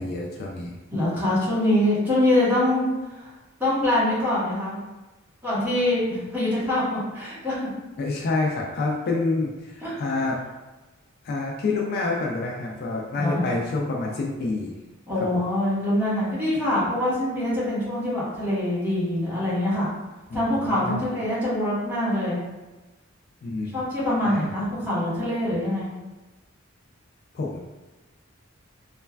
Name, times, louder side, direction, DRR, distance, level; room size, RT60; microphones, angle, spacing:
voice 1, 0.0-0.8 8.0-10.4 11.2-14.7 15.2-15.4 20.3-21.1 23.4-23.8 24.3-24.4 27.3-27.6, left 3 dB, 50° left, -1 dB, 0.3 m, -28 dB
voice 2, 0.9-3.3 3.6-4.8 5.4-7.7 9.8-9.9 13.2-13.4 15.1-19.9 20.3-22.4 23.7-25.9, left 1 dB, 10° right, -10 dB, 1.0 m, -24 dB
3.1 x 2.2 x 2.2 m, 1.1 s
head